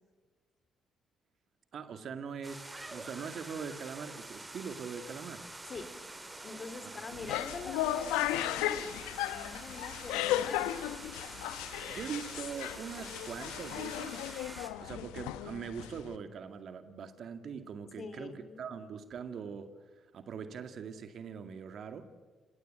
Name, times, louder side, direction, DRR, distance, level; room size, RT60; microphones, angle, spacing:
voice 1, 1.7-5.5 6.8-7.2 11.9-14.2 14.8-22.0, right 6 dB, 60° right, 9 dB, 2.1 m, -42 dB
sound 1, 2.4-14.7, right 2 dB, 20° right, 3.5 m, -47 dB
voice 2, 6.4-10.7 18.0-18.7, left 4 dB, 45° left, 10 dB, 3.4 m, -45 dB
sound 2, 7.1-16.2, left 13 dB, 90° left, 0.9 m, -35 dB
30.0 x 17.5 x 9.2 m, 1.4 s
supercardioid pair, 60°, 0 cm